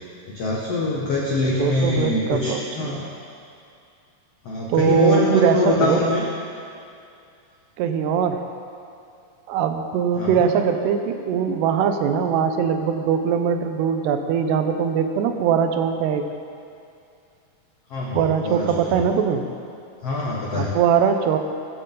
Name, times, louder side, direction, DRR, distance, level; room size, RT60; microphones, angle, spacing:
voice 1, 0.3-3.1 4.5-6.2 10.2-10.5 17.9-19.0 20.0-20.7, left 2 dB, 50° left, -5 dB, 2.0 m, -24 dB
voice 2, 1.5-3.1 4.7-6.0 7.8-8.4 9.5-16.3 18.1-19.5 20.6-21.4, right 7 dB, 80° right, 7 dB, 3.0 m, -21 dB
19.0 x 15.0 x 3.9 m, 2.5 s
omnidirectional pair, 4.8 m